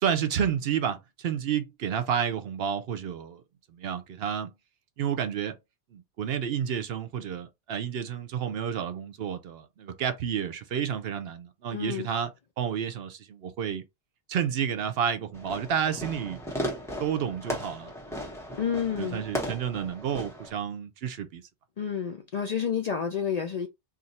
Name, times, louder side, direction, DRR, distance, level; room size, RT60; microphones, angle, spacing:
voice 1, 0.0-3.4 3.7-4.5 5.0-5.6 5.9-12.3 12.6-13.8 14.3-16.4 17.0-17.9 19.0-21.4, right 8 dB, 65° right, 0.8 m, -30 dB
voice 2, 11.7-12.1 18.5-19.4 21.8-23.7, left 7 dB, 60° left, 0.4 m, -30 dB
Fireworks, 15.3-20.5, equal, 5° left, 0.9 m, -36 dB
2.6 x 2.5 x 4.0 m
omnidirectional pair, 1.1 m